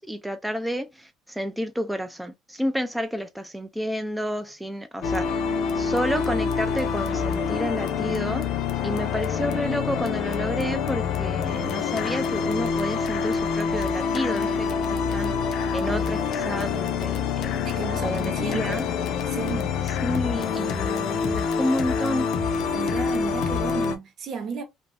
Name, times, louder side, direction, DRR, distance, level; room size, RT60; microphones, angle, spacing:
voice 1, 0.0-5.3 5.7-8.5 8.8-15.3 15.7-18.8 20.0-22.3, equal, 5° right, 0.3 m, -30 dB
sound 1, 5.0-24.0, left 6 dB, 65° left, 0.5 m, -26 dB
voice 2, 17.6-18.8 19.3-19.8 22.7-24.6, right 6 dB, 55° right, 0.8 m, -33 dB
2.5 x 2.1 x 3.1 m
cardioid pair, 115°, 0 cm